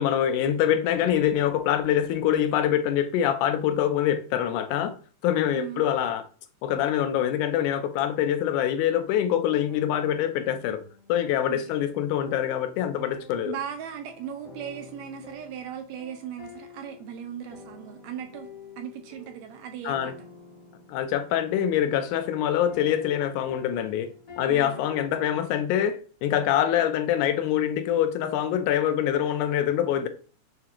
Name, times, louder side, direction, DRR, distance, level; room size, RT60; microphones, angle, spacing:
voice 1, 0.0-5.0 5.2-6.2 6.6-10.8 11.1-13.6 19.8-20.1 20.9-24.1 24.4-30.1, left 10 dB, 90° left, 2.1 m, -25 dB
sound 1, 9.7-25.6, left 4 dB, 55° left, 0.4 m, -49 dB
voice 2, 13.4-18.5 18.8-20.1 24.4-24.9, right 9 dB, 80° right, 1.7 m, -38 dB
6.6 x 2.8 x 2.4 m
omnidirectional pair, 3.5 m